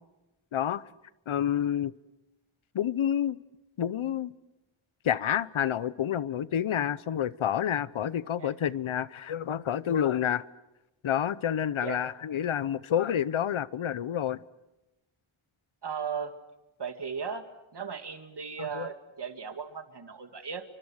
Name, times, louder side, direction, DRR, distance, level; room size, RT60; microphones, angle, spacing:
voice 1, 0.5-0.8 1.3-1.9 2.7-3.4 3.8-4.3 5.0-10.4 11.0-14.4 18.6-18.9, left 9 dB, 75° left, 0.9 m, -29 dB
voice 2, 15.8-16.3 16.8-17.4 17.7-20.6, right 6 dB, 55° right, 2.4 m, -36 dB
30.0 x 24.5 x 6.5 m
wide cardioid pair, 120°, 49 cm